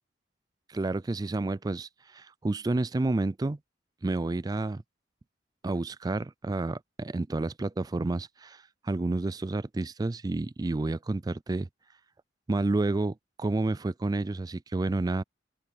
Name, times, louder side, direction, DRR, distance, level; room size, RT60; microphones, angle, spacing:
voice 1, 0.7-3.6 4.0-4.8 5.6-11.7 12.5-15.2, right 2 dB, 20° right, 0.3 m, -30 dB
open air
head